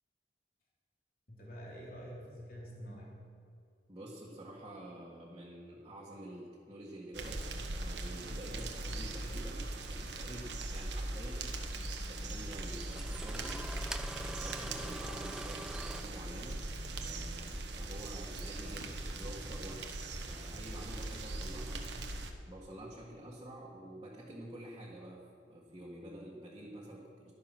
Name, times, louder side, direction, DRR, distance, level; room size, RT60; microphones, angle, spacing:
voice 1, 1.3-3.3, equal, 55° left, -4 dB, 2.9 m, -47 dB
voice 2, 3.9-13.7 14.2-19.9 20.3-21.9 22.4-27.3, right 1 dB, 25° right, -5 dB, 1.6 m, -48 dB
sound 1, 7.1-22.3, right 2 dB, 90° right, 1.1 m, -40 dB
Engine starting, 10.5-10.6 12.1-12.2 12.8-16.0, right 1 dB, 5° right, 0.4 m, -44 dB
12.5 x 9.8 x 6.1 m, 2.5 s
head